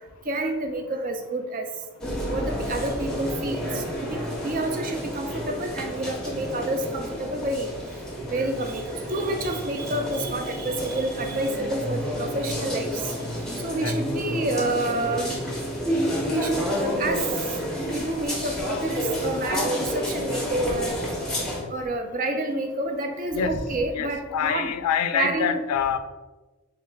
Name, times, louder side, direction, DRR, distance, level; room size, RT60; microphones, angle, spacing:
voice 1, 0.3-1.7 2.3-7.7 8.3-13.1 13.6-15.3 16.3-17.2 17.9-21.0 21.7-24.7 25.1-25.6, right 2 dB, 40° right, 5 dB, 0.4 m, -29 dB
sound 1, 2.0-21.6, equal, 5° left, 0.7 m, -30 dB
voice 2, 23.9-26.0, left 8 dB, 90° left, 12 dB, 0.3 m, -26 dB
3.8 x 3.2 x 3.3 m, 1.2 s
head